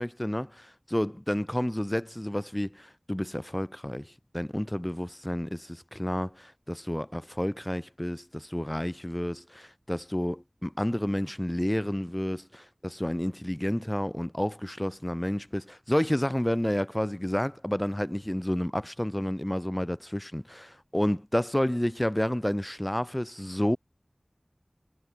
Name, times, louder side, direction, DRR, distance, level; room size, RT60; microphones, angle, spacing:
voice 1, 0.0-23.8, equal, 15° left, 2.2 m, -30 dB
wide cardioid pair, 40°, 0 cm